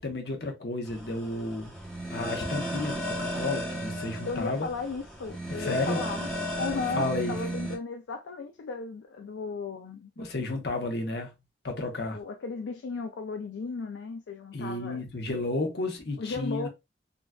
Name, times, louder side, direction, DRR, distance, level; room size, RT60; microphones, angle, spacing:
voice 1, 0.0-1.7 2.1-4.7 5.6-6.0 6.7-7.4 10.2-11.3 11.6-12.2 14.5-16.7, left 2 dB, 65° left, 0.9 m, -32 dB
sound 1, 0.9-7.8, equal, ahead, 0.8 m, -35 dB
voice 2, 4.2-6.3 6.6-10.1 12.1-15.0 16.2-16.7, left 4 dB, 90° left, 0.4 m, -35 dB
3.8 x 2.3 x 2.3 m
head